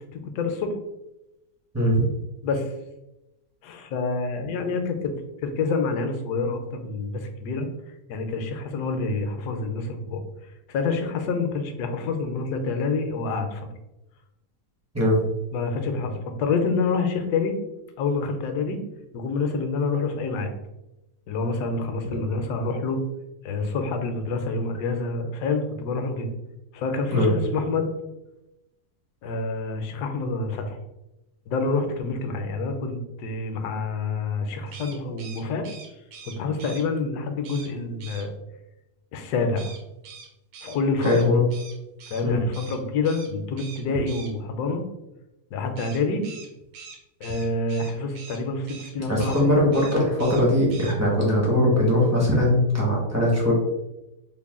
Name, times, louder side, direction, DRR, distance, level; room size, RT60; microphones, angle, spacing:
voice 1, 0.1-0.8 2.4-2.7 3.6-5.1 5.4-7.7 8.1-10.2 10.7-13.7 15.5-17.6 18.0-18.8 19.1-20.5 21.3-23.0 23.4-26.3 26.7-27.9 29.2-30.8 31.5-35.7 36.3-38.3 39.1-39.7 40.6-41.4 42.1-44.8 45.5-46.3 47.2-49.6, left 3 dB, 75° left, 6 dB, 1.1 m, -27 dB
sound 1, 34.7-36.8 37.4-37.7 38.0-38.3 39.6-42.2 42.5-42.8 43.0-43.3 43.6-44.3 45.8-48.4 48.7-48.9 49.2-49.4 49.7-50.4 50.7-50.9, right 5 dB, 70° right, 1.1 m, -43 dB
voice 2, 41.0-41.5 42.2-42.5 49.1-53.5, left 1 dB, 25° right, -4 dB, 0.3 m, -20 dB
3.9 x 2.1 x 3.5 m, 0.93 s
omnidirectional pair, 1.9 m